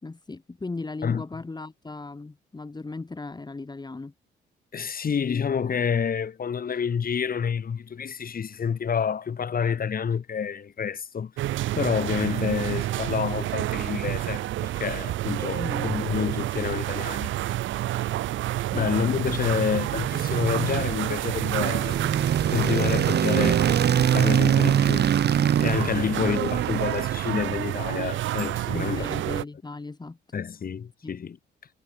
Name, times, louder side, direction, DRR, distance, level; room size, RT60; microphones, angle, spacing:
voice 1, 0.0-4.1 15.5-16.0 18.7-19.2 26.0-26.4 28.7-30.2 31.0-31.1, left 3 dB, 20° left, 3.4 m, -37 dB
voice 2, 4.7-11.3 11.7-17.3 18.7-22.0 22.5-23.6 24.0-29.4 30.3-31.4, left 7 dB, 45° left, 5.3 m, -28 dB
sound 1, 11.4-29.4, right 14 dB, 75° right, 0.7 m, -29 dB
sound 2, 19.5-27.8, right 9 dB, 55° right, 2.7 m, -25 dB
cardioid pair, 90°, 20 cm